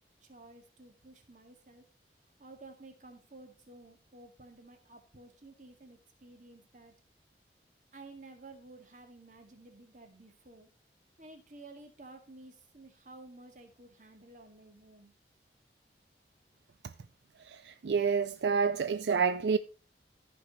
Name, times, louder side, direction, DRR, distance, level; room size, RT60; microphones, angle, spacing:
voice 1, 0.2-1.8 2.4-6.9 7.9-10.7 11.2-15.1, right 2 dB, 45° right, 2.0 m, -53 dB
voice 2, 17.5-19.6, right 5 dB, 70° right, 0.4 m, -28 dB
14.5 x 5.3 x 4.0 m
head